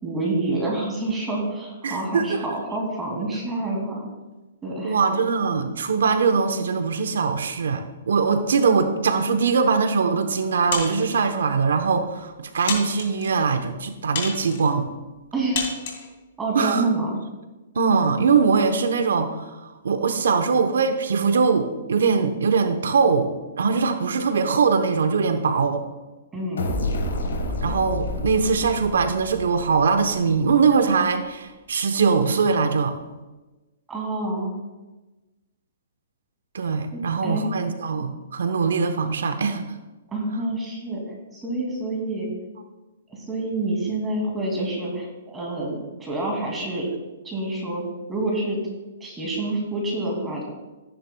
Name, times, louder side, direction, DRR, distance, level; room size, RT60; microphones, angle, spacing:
voice 1, 0.0-4.1 4.6-5.0 15.3-15.6 16.4-17.2 26.3-26.6 33.9-34.5 36.9-37.5 40.1-42.3 43.1-46.9 47.2-47.8 48.1-48.6 49.0-50.4, right 2 dB, 10° right, -2 dB, 2.4 m, -27 dB
voice 2, 1.8-2.4 4.8-14.9 16.5-16.9 17.7-25.9 27.6-33.0 36.5-39.6, right 5 dB, 80° right, 7 dB, 0.9 m, -22 dB
sound 1, 10.7-11.3 12.0-12.1 12.7-13.3 14.2-14.7 15.6-16.1, left 5 dB, 50° left, 2.7 m, -30 dB
sound 2, 26.6-30.2, left 1 dB, 85° left, 3.1 m, -29 dB
15.0 x 9.9 x 2.3 m, 1.1 s
hypercardioid pair, 160°, 0 cm